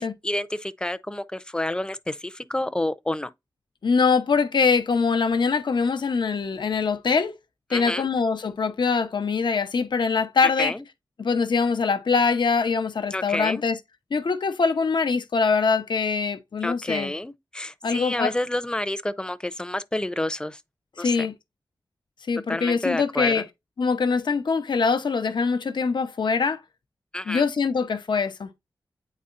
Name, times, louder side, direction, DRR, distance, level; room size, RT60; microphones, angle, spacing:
voice 1, 0.0-3.3 7.7-8.1 10.4-10.8 13.1-13.6 16.6-20.6 21.0-21.3 22.5-23.4 27.1-27.5, left 1 dB, 10° left, 0.6 m, -29 dB
voice 2, 3.8-7.3 7.7-10.7 11.2-13.8 14.1-17.1 17.8-18.3 21.0-21.3 22.3-23.4 23.8-26.6 27.3-28.5, left 5 dB, 75° left, 0.8 m, -23 dB
9.2 x 4.2 x 2.5 m
wide cardioid pair, 85°, 8 cm